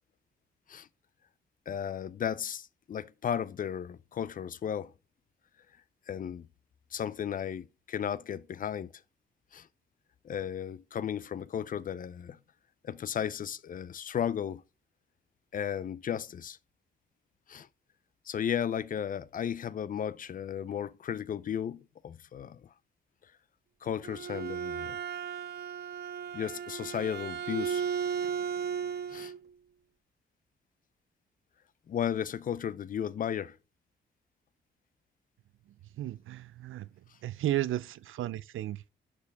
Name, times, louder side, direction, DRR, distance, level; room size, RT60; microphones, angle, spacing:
voice 1, 1.7-4.9 6.1-6.5 6.9-8.9 9.5-9.7 10.2-12.4 12.8-14.6 15.5-16.6 17.5-17.7 18.3-22.6 23.8-25.0 26.3-27.8 29.1-29.3 31.9-33.6, left 8 dB, 45° left, 0.4 m, -34 dB
Bowed string instrument, 23.9-29.4, right 7 dB, 55° right, 0.8 m, -35 dB
voice 2, 36.0-36.9 37.2-38.9, right 13 dB, 80° right, 0.5 m, -34 dB
11.0 x 4.7 x 3.4 m
wide cardioid pair, 135°, 20 cm